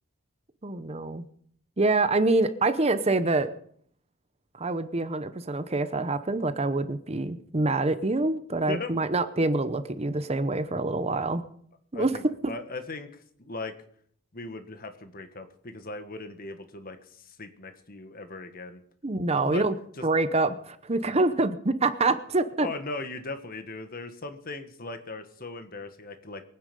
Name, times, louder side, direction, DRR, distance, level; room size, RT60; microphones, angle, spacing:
voice 1, 0.6-1.3 1.8-3.5 4.5-11.4 11.9-12.1 19.0-19.7 20.0-22.7, right 2 dB, 30° right, 11 dB, 0.8 m, -26 dB
voice 2, 11.9-13.8 14.3-18.8 19.4-19.7 20.0-20.1 22.6-26.4, left 2 dB, 40° left, 8 dB, 1.6 m, -38 dB
23.0 x 9.7 x 5.4 m, 0.62 s
head